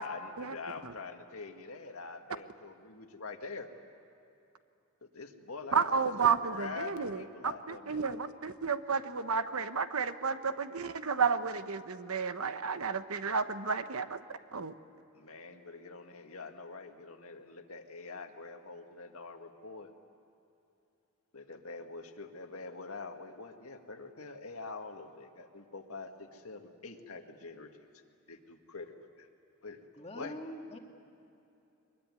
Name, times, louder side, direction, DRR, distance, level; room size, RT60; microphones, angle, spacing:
voice 1, 0.0-3.7 5.0-8.1 15.1-19.9 21.3-27.9 28.3-29.3 29.6-29.8 30.1-30.3, left 4 dB, 80° left, 5 dB, 1.8 m, -45 dB
voice 2, 5.7-14.2 14.5-14.7, right 5 dB, 80° right, 11 dB, 1.0 m, -32 dB
voice 3, 30.0-30.8, left 1 dB, 25° left, 2 dB, 2.0 m, -43 dB
23.5 x 21.5 x 9.6 m, 2.9 s
head